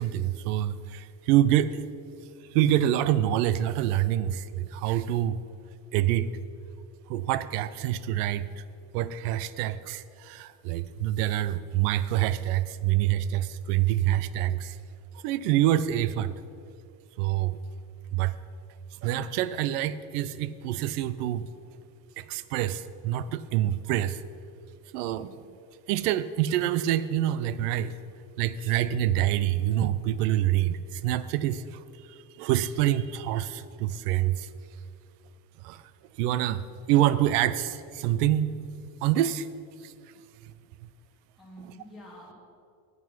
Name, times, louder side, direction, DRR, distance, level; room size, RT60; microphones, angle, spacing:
voice 1, 0.0-1.8 2.5-5.4 5.9-6.3 7.1-8.6 8.9-14.8 15.2-16.3 17.2-17.6 18.1-18.3 19.0-21.5 22.2-24.2 24.9-25.4 25.9-27.9 28.4-31.8 32.1-34.5 35.6-35.8 36.2-38.6 39.0-39.5 39.8-39.9 41.6-41.7, right 12 dB, 70° right, 15 dB, 0.6 m, -26 dB
voice 2, 41.1-42.3, equal, ahead, -7 dB, 1.9 m, -48 dB
9.3 x 8.5 x 5.8 m, 2.5 s
cardioid pair, 155°, 49 cm